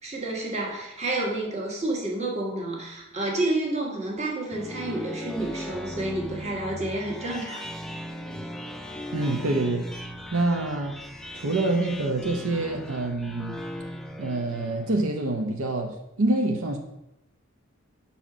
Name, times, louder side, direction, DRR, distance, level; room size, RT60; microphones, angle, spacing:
voice 1, 0.0-7.7, right 2 dB, 30° right, -1 dB, 1.4 m, -30 dB
sound 1, 4.3-15.1, left 1 dB, ahead, 0.4 m, -38 dB
voice 2, 9.1-9.9 10.3-11.0 11.3-13.6 14.2-16.8, right 2 dB, 80° right, 3 dB, 0.7 m, -26 dB
5.7 x 4.2 x 6.0 m, 0.88 s
head